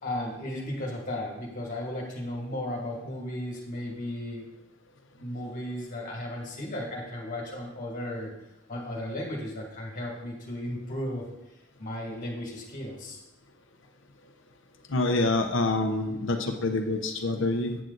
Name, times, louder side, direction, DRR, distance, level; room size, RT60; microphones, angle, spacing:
voice 1, 0.0-4.5 5.1-8.3 8.7-11.2 11.8-13.2, left 1 dB, 40° left, -1 dB, 2.1 m, -35 dB
voice 2, 14.9-17.8, left 2 dB, 65° left, 5 dB, 0.9 m, -26 dB
8.9 x 6.2 x 4.0 m, 0.92 s
head